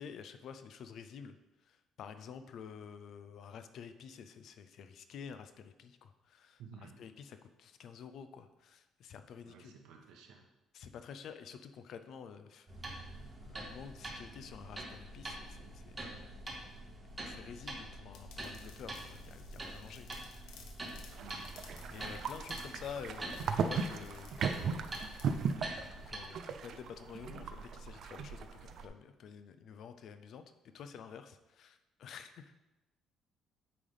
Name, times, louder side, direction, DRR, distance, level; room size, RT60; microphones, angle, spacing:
voice 1, 0.0-1.3 1.7-6.6 7.0-9.7 10.7-12.7 13.5-16.1 17.2-20.1 20.4-20.6 21.9-24.9 26.1-30.4 30.7-32.5, left 7 dB, 50° left, 9 dB, 0.5 m, -49 dB
voice 2, 6.6-7.0 9.4-10.4 21.2-21.5, right 6 dB, 75° right, 2 dB, 1.2 m, -53 dB
sound 1, 12.7-26.2, right 1 dB, 15° right, 1.2 m, -45 dB
sound 2, 18.1-25.6, left 6 dB, 85° left, 0.9 m, -59 dB
sound 3, 21.1-28.9, right 6 dB, 45° right, 0.4 m, -38 dB
8.6 x 3.4 x 5.5 m, 1.0 s
cardioid pair, 180°, 0 cm